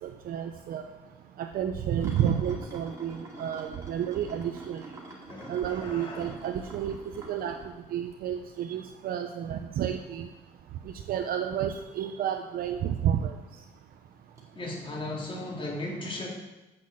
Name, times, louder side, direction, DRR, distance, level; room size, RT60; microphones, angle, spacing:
voice 1, 0.0-0.8 1.4-4.8 5.5-7.0 7.3-7.6 7.9-10.3 11.1-13.3, right 9 dB, 60° right, 5 dB, 0.7 m, -30 dB
sound 1, 2.0-8.5 8.9-9.1 12.6-12.7 14.4-14.5, right 2 dB, 20° right, 2.6 m, -46 dB
voice 2, 5.3-6.3 14.5-16.3, left 2 dB, 30° left, -2 dB, 3.1 m, -36 dB
7.7 x 6.4 x 7.6 m, 1.1 s
cardioid pair, 110°, 17 cm